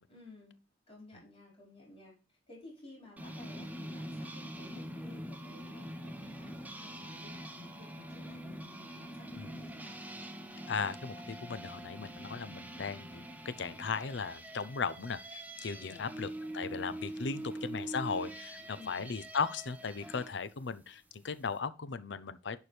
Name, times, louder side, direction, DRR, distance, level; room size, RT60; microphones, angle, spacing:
voice 1, 0.1-0.5 0.9-2.1 2.5-9.9 15.7-16.1 17.2-17.5 18.6-19.1, left 2 dB, 25° left, 4.7 m, -55 dB
sound 1, 3.2-20.3, right 1 dB, 10° right, 1.0 m, -44 dB
voice 2, 10.7-22.7, left 5 dB, 70° left, 0.6 m, -37 dB
11.0 x 4.6 x 3.3 m
head